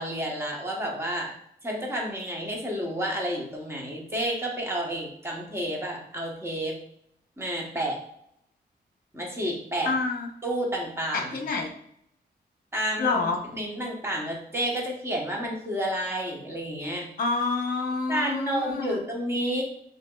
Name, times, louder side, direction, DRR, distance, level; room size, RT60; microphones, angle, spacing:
voice 1, 0.0-1.3 1.6-6.8 7.4-8.0 9.1-9.9 10.4-11.5 12.7-13.2 13.5-17.1 18.1-19.6, right 1 dB, 15° right, -2 dB, 1.1 m, -30 dB
voice 2, 9.8-10.3 11.1-11.7 13.0-13.4 17.2-19.0, left 3 dB, 55° left, 3 dB, 0.8 m, -27 dB
6.6 x 2.9 x 2.3 m, 0.72 s
wide cardioid pair, 140°, 18 cm